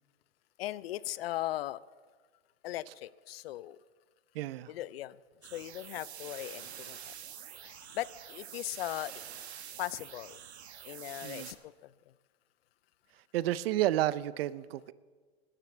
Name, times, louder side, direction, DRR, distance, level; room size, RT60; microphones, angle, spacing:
voice 1, 0.6-1.8 2.6-3.8 4.7-5.2 5.5-7.1 7.6-9.2 9.8-10.4 10.8-11.9, left 15 dB, 65° left, 20 dB, 0.6 m, -38 dB
voice 2, 4.3-4.7 11.2-11.5 13.3-14.9, right 14 dB, 65° right, 18 dB, 0.7 m, -31 dB
sound 1, 5.4-11.5, right 9 dB, 80° right, 1.5 m, -47 dB
13.0 x 10.0 x 8.4 m, 1.5 s
hypercardioid pair, 100°, 32 cm